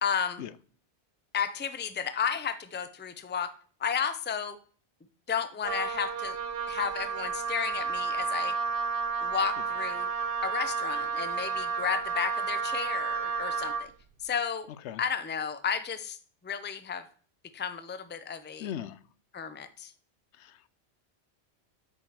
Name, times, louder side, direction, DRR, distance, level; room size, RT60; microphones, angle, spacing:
voice 1, 0.0-0.4 1.3-3.5 3.8-4.6 5.3-6.4 6.7-8.6 9.2-10.1 10.4-13.9 14.2-14.7 15.0-16.2 16.4-17.0 17.5-18.7 19.3-19.9, left 7 dB, 15° left, 12 dB, 0.4 m, -32 dB
Wind instrument woodwind instrument, 5.6-13.9, right 5 dB, 60° right, 0.9 m, -31 dB
voice 2, 18.6-19.0 20.4-20.7, left 10 dB, 85° left, 17 dB, 0.9 m, -38 dB
8.4 x 5.1 x 5.8 m, 0.44 s
omnidirectional pair, 1.1 m